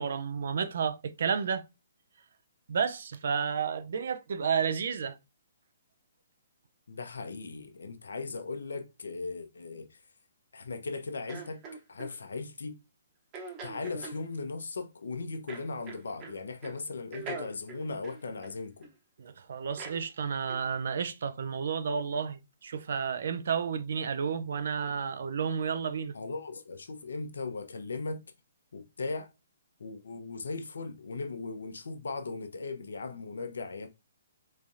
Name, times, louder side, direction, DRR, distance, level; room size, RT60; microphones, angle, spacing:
voice 1, 0.0-1.7 2.7-5.2 19.2-26.1, right 6 dB, 65° right, 0.4 m, -31 dB
voice 2, 6.9-10.0 10.5-11.6 11.9-12.7 13.6-18.9 26.1-28.2 28.7-29.3 29.8-33.9, left 3 dB, 75° left, 0.7 m, -38 dB
sound 1, 11.3-12.1 13.3-14.2 15.5-16.4 16.6-16.8 17.1-18.9 19.8-20.0 20.5-20.7, right 4 dB, 25° right, 0.9 m, -42 dB
3.5 x 3.2 x 2.7 m
hypercardioid pair, 140°, 0 cm